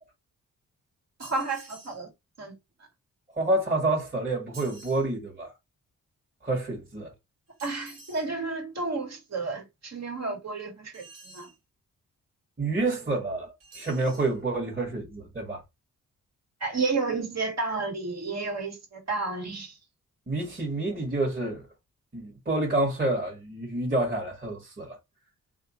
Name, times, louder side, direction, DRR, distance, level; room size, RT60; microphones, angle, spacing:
voice 1, 1.2-2.1 2.4-2.5 7.6-11.1 11.3-11.5 16.6-19.8, right 3 dB, 55° right, 2.3 m, -31 dB
sound 1, 1.2-2.0 4.5-5.1 7.6-8.3 10.9-11.6 13.6-14.3, right 2 dB, 75° right, 2.5 m, -49 dB
voice 2, 3.4-5.5 6.4-7.1 12.6-15.6 20.3-21.7 22.1-25.0, right 2 dB, 30° right, 2.0 m, -28 dB
3.5 x 3.5 x 3.0 m
cardioid pair, 75°, 33 cm